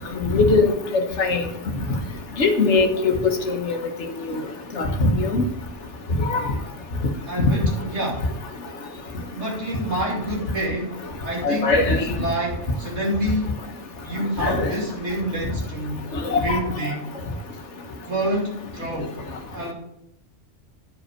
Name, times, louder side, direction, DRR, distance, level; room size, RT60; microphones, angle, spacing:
voice 1, 0.2-1.4 2.4-3.2 3.5-3.8 4.3-4.4 4.8-5.4 6.3-6.4 11.4-12.1 14.4-14.7 16.2-16.6, left 3 dB, 80° left, 5 dB, 1.5 m, -20 dB
voice 2, 7.3-8.2 9.3-10.9 11.2-13.6 14.0-16.1 16.4-17.1 18.1-19.2 19.5-19.7, right 1 dB, 80° right, -2 dB, 3.0 m, -27 dB
10.5 x 5.1 x 6.4 m, 0.81 s
omnidirectional pair, 1.2 m